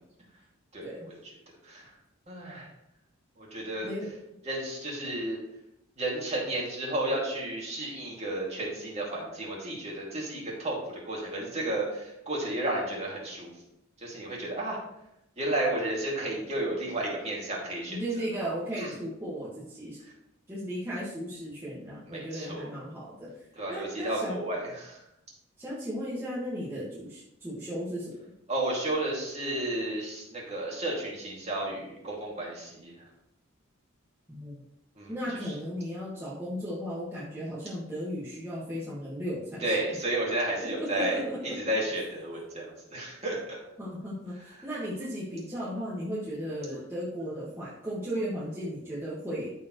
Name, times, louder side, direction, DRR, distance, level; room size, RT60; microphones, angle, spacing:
voice 1, 2.3-2.7 3.4-3.9 4.5-5.4 6.0-10.8 11.0-13.5 14.0-14.8 15.4-18.0 18.8-18.9 22.1-22.7 23.6-25.0 28.5-32.9 35.0-35.1 39.6-42.7 42.9-43.6, right 1 dB, 30° right, -3 dB, 2.3 m, -32 dB
voice 2, 3.8-4.2 17.9-20.0 20.5-23.4 23.7-24.4 25.6-28.2 34.3-34.6 35.1-39.8 40.6-41.5 41.9-42.0 43.8-49.5, equal, 10° right, -8 dB, 1.6 m, -35 dB
13.5 x 4.5 x 3.1 m, 0.84 s
head